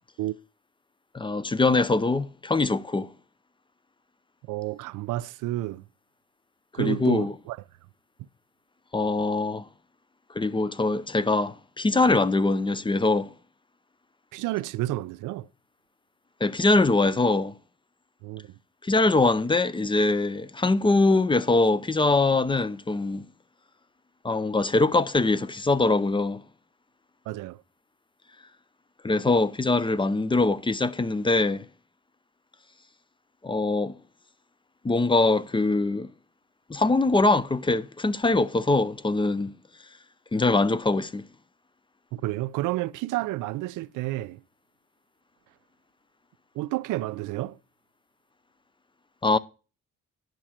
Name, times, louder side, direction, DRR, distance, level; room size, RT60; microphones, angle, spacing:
voice 1, 1.1-3.1 6.8-7.3 8.9-9.6 10.3-13.3 16.4-17.5 18.8-23.2 24.2-26.4 29.0-31.6 33.4-33.9 34.8-36.1 36.7-39.5 40.3-41.3 49.2-49.4, left 3 dB, 15° left, 0.5 m, -23 dB
voice 2, 4.5-5.8 6.7-7.6 14.3-15.5 18.2-18.5 27.3-27.6 42.1-44.4 46.5-47.6, right 17 dB, 90° right, 0.5 m, -30 dB
10.5 x 6.2 x 4.3 m
cardioid pair, 90°, 30 cm